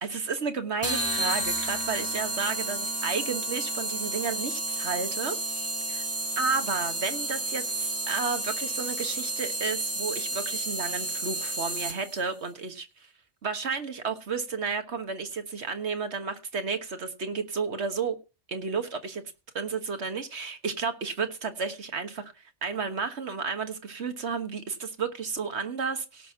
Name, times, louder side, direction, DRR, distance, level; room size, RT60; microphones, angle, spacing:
voice 1, 0.0-6.1 6.4-13.1 13.4-18.2 18.5-19.2 19.6-26.3, right 5 dB, 70° right, 1.6 m, -32 dB
sound 1, 0.8-12.2, right 2 dB, 15° right, 1.2 m, -31 dB
17.5 x 6.2 x 5.6 m
omnidirectional pair, 1.2 m